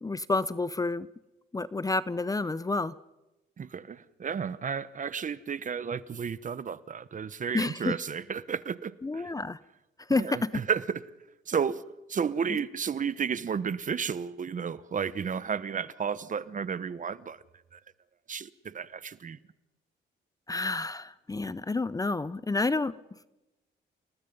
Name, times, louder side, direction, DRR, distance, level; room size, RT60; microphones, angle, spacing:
voice 1, 0.0-1.1 1.5-3.0 7.5-7.9 9.0-9.6 10.1-10.5 20.5-23.0, left 3 dB, 20° left, 0.7 m, -29 dB
voice 2, 3.6-9.3 10.1-11.0 11.5-11.8 12.1-17.4 17.7-17.8 18.3-19.4, right 6 dB, 40° right, 1.1 m, -32 dB
29.5 x 19.5 x 5.5 m
cardioid pair, 90°, 20 cm